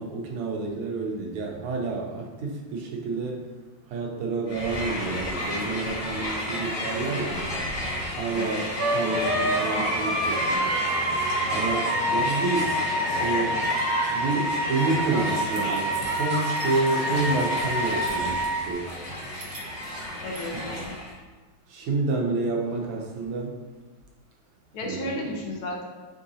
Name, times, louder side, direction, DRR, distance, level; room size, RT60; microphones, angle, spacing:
voice 1, 0.0-3.5 3.9-7.5 8.1-8.6 8.9-10.7 11.5-12.8 13.2-13.7 14.1-18.9 21.7-23.6 24.8-25.2, right 3 dB, 90° right, 0 dB, 1.7 m, -29 dB
Crowd, 4.5-21.2, left 1 dB, 25° left, 0.7 m, -31 dB
voice 2, 8.3-8.7 20.2-20.9 24.7-25.9, left 1 dB, 75° left, -1 dB, 1.7 m, -33 dB
Wind instrument woodwind instrument, 8.8-18.7, right 1 dB, 55° right, 1.1 m, -27 dB
sound 1, 15.5-17.3 17.5-18.5 18.9-20.4, right 2 dB, 70° right, 0.6 m, -45 dB
4.6 x 3.8 x 2.7 m, 1.4 s
omnidirectional pair, 2.3 m